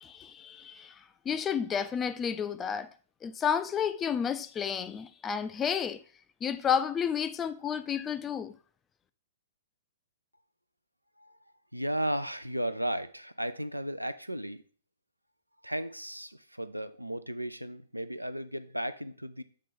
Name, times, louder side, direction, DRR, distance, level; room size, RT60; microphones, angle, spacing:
voice 1, 0.0-2.9 3.2-6.0 6.4-8.5, left 7 dB, 15° left, 0.4 m, -31 dB
voice 2, 11.7-14.6 15.6-19.4, right 1 dB, 90° right, 0.4 m, -35 dB
7.6 x 3.3 x 5.4 m
figure-of-eight pair, 110°, 0 cm